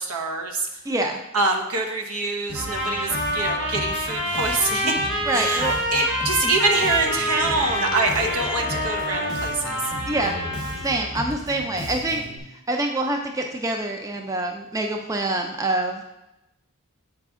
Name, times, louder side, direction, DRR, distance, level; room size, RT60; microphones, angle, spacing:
voice 1, 0.0-0.7 1.3-4.9 5.3-9.8, right 3 dB, 75° right, 2 dB, 1.0 m, -25 dB
voice 2, 0.9-1.2 4.8-4.9 5.3-5.8 6.4-6.5 10.1-10.3 10.8-12.2 12.7-16.0, right 2 dB, 15° right, 3 dB, 0.4 m, -26 dB
Bass guitar, 2.5-12.4, left 1 dB, 35° right, 1.3 m, -36 dB
sound 1, 2.5-10.9, equal, 55° right, 1.7 m, -27 dB
sound 2, 7.3-12.0, left 3 dB, 55° left, 0.6 m, -36 dB
7.8 x 5.0 x 3.6 m, 0.92 s
head